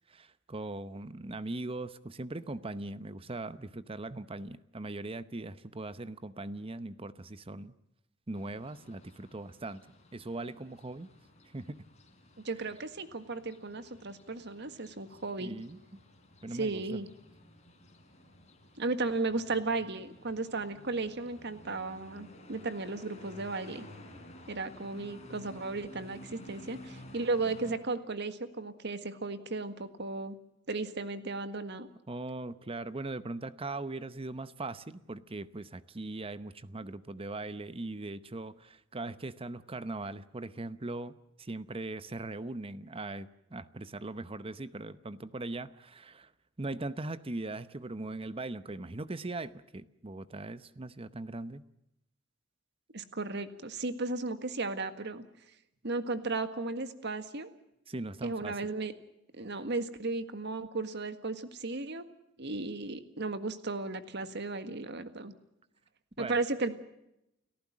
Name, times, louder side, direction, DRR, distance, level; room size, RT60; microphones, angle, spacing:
voice 1, 0.1-7.7 8.3-9.8 10.1-11.1 11.5-11.8 15.4-15.8 16.4-17.0 32.1-46.3 46.6-51.6 57.9-58.6 66.2-66.3, right 2 dB, 30° right, 14 dB, 0.8 m, -40 dB
sound 1, 8.3-27.8, left 1 dB, 35° left, 4.1 m, -53 dB
voice 2, 12.4-15.6 16.5-17.1 18.8-23.9 24.5-30.4 30.7-31.9 52.9-55.2 55.8-57.5 58.2-58.9 59.3-62.0 62.4-65.3 66.2-66.8, right 3 dB, 60° right, 10 dB, 1.7 m, -35 dB
30.0 x 14.5 x 7.4 m, 0.85 s
head